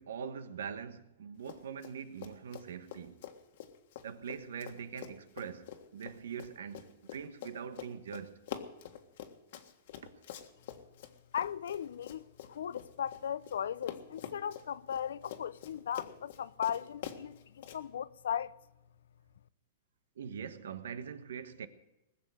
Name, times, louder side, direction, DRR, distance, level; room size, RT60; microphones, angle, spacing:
voice 1, 0.0-3.3 4.0-8.5 10.0-10.5 20.2-21.7, right 7 dB, 90° right, 1.3 m, -43 dB
Run, 1.4-13.6 13.8-17.8, left 10 dB, 60° left, 1.6 m, -46 dB
voice 2, 11.3-12.2 12.5-18.5, left 8 dB, 85° left, 0.6 m, -37 dB
20.0 x 7.1 x 9.2 m
hypercardioid pair, 155°, 0 cm